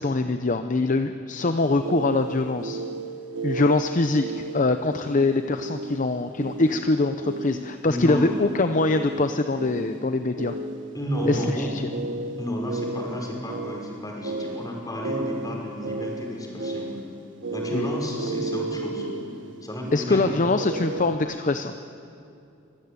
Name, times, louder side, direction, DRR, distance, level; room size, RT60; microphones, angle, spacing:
voice 1, 0.0-2.8 3.4-10.5 11.2-11.8 17.7-17.9 19.9-21.7, left 3 dB, 40° left, 8 dB, 0.7 m, -23 dB
sound 1, 1.5-21.2, right 2 dB, 75° right, 1.4 m, -34 dB
voice 2, 7.8-8.3 10.9-11.7 12.4-16.9 17.5-19.1 19.6-20.9, equal, 20° left, -2 dB, 5.7 m, -31 dB
25.0 x 18.5 x 9.7 m, 2.7 s
head